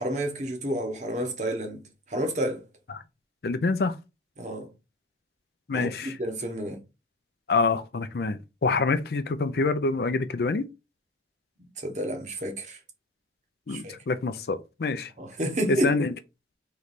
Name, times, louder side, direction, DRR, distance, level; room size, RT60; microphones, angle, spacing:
voice 1, 0.0-1.8 2.1-2.6 4.4-4.7 5.7-6.8 11.8-12.8 13.7-13.9 15.2-15.9, right 1 dB, 40° right, 1.0 m, -30 dB
voice 2, 3.4-3.9 5.7-6.2 7.5-10.7 13.7-15.1 15.8-16.1, left 3 dB, 60° left, 0.4 m, -26 dB
3.2 x 3.1 x 4.0 m
head